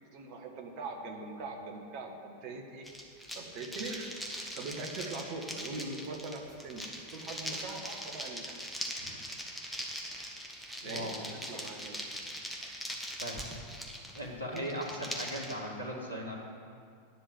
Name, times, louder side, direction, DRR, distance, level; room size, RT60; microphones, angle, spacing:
voice 1, 0.1-2.9 3.3-4.2 4.5-8.6 10.8-12.0 12.6-12.7 14.5-14.6, right 3 dB, 45° right, 3 dB, 1.5 m, -42 dB
sound 1, 2.8-15.5, equal, ahead, 1.4 m, -41 dB
voice 2, 9.0-9.3 10.8-11.6 13.2-13.4 14.1-16.4, equal, 85° left, -2 dB, 1.7 m, -39 dB
10.0 x 6.2 x 8.1 m, 2.3 s
figure-of-eight pair, 90°, 0 cm